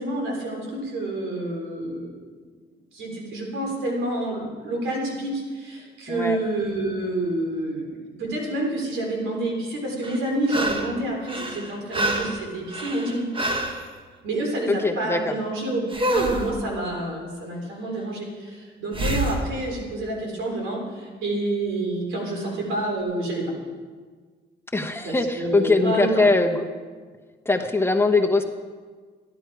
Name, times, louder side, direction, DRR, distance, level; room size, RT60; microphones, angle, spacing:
voice 1, 0.0-2.2 2.9-13.3 14.2-23.5 25.0-26.3, right 1 dB, 85° right, 0 dB, 3.7 m, -28 dB
voice 2, 6.1-6.4 14.7-15.3 24.7-26.7 27.5-28.4, left 3 dB, 10° left, 4 dB, 1.0 m, -21 dB
sound 1, 10.0-11.0 11.3-13.8 15.9-16.5 18.9-19.4 22.4-22.5, right 1 dB, 25° right, 1.4 m, -27 dB
14.5 x 10.5 x 4.8 m, 1.5 s
cardioid pair, 90°, 20 cm